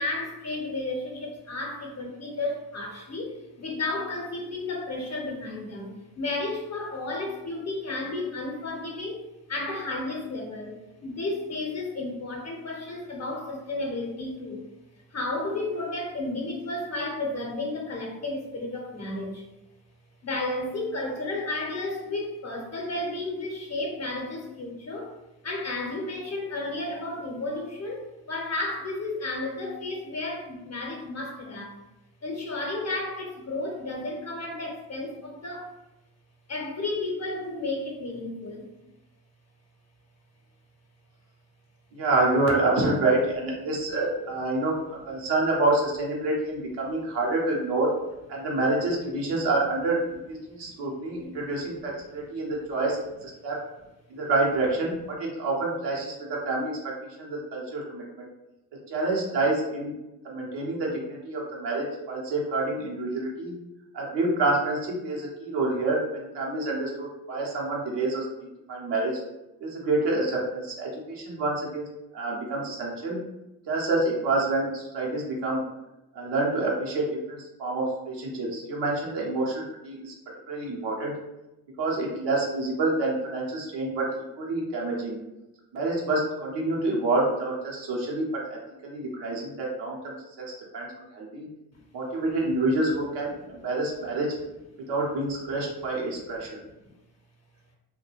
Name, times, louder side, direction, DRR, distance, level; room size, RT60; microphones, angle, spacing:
voice 1, 0.0-14.6 15.1-19.4 20.2-25.1 25.4-31.8 32.2-35.7 36.5-38.7 50.6-50.7 91.7-91.8, left 2 dB, 40° left, 1 dB, 0.7 m, -32 dB
voice 2, 41.9-47.9 48.3-53.6 54.1-56.7 57.2-58.3 58.9-59.9 60.2-63.5 63.9-68.3 68.7-69.1 69.6-71.8 72.1-73.2 73.7-75.6 76.1-80.1 80.5-81.1 81.8-84.1 84.4-85.2 85.7-90.5 90.7-90.9 91.1-91.5 91.9-94.3 94.9-96.5, right 2 dB, 75° right, -3 dB, 0.8 m, -27 dB
2.3 x 2.2 x 3.0 m, 0.97 s
hypercardioid pair, 45°, 42 cm